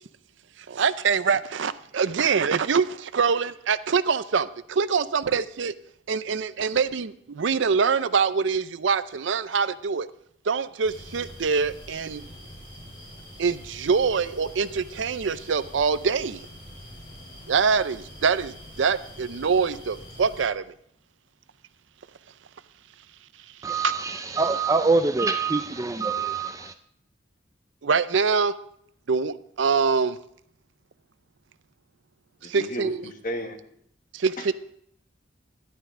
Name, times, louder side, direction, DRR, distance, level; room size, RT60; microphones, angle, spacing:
voice 1, 0.6-5.7 6.1-10.1 10.4-12.2 13.4-16.5 17.5-20.7 23.8-23.9 27.8-28.5 29.1-30.2 32.4-33.0 34.1-34.5, right 5 dB, 70° right, 0.5 m, -24 dB
sound 1, 10.8-20.5, equal, 25° left, 3.6 m, -44 dB
voice 2, 23.6-26.7, right 4 dB, 15° right, 0.4 m, -24 dB
voice 3, 32.4-33.6, equal, 45° left, 1.4 m, -33 dB
14.0 x 11.0 x 3.7 m
head